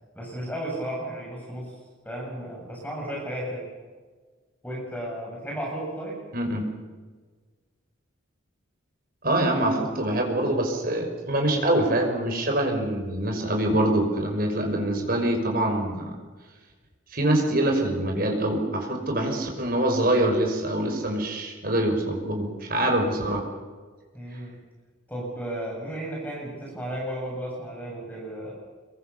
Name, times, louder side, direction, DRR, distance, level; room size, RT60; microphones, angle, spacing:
voice 1, 0.1-1.7 2.0-3.7 4.6-6.2 24.1-24.6 25.1-28.5, right 1 dB, 10° left, -2 dB, 7.5 m, -34 dB
voice 2, 6.3-6.6 9.2-16.1 17.1-23.4, right 1 dB, 45° right, 3 dB, 5.8 m, -24 dB
26.5 x 23.0 x 7.1 m, 1.4 s
head